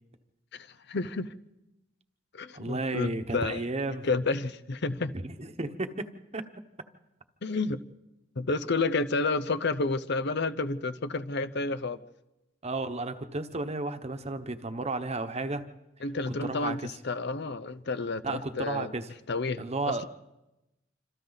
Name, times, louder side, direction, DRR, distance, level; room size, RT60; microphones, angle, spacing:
voice 1, 0.5-1.3 2.3-3.6 4.0-5.1 7.4-7.8 8.4-12.0 16.0-18.9 19.3-20.1, left 3 dB, 60° left, 14 dB, 0.8 m, -30 dB
voice 2, 2.5-4.1 5.1-6.1 6.3-6.4 12.6-15.6 16.4-17.0 18.2-19.1 19.6-20.1, right 2 dB, 35° right, 9 dB, 1.1 m, -33 dB
27.5 x 26.0 x 4.1 m, 0.97 s
head